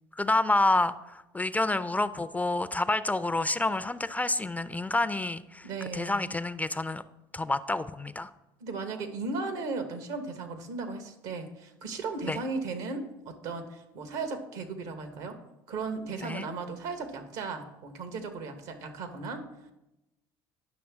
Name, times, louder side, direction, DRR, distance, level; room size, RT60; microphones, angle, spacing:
voice 1, 0.2-7.0 7.3-8.3 12.3-12.4 16.2-16.5, left 2 dB, 15° left, 13 dB, 0.4 m, -28 dB
voice 2, 5.6-6.3 8.6-15.4 15.7-19.5, right 4 dB, 75° right, 7 dB, 1.2 m, -36 dB
9.8 x 6.0 x 3.5 m, 0.94 s
hypercardioid pair, 70°, 12 cm